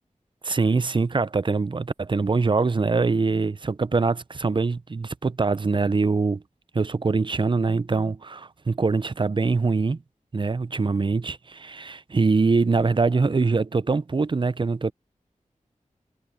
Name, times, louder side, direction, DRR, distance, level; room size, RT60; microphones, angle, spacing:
voice 1, 0.4-6.4 6.7-10.0 10.3-14.9, right 4 dB, 40° right, 0.5 m, -23 dB
wide cardioid pair, 60°, 13 cm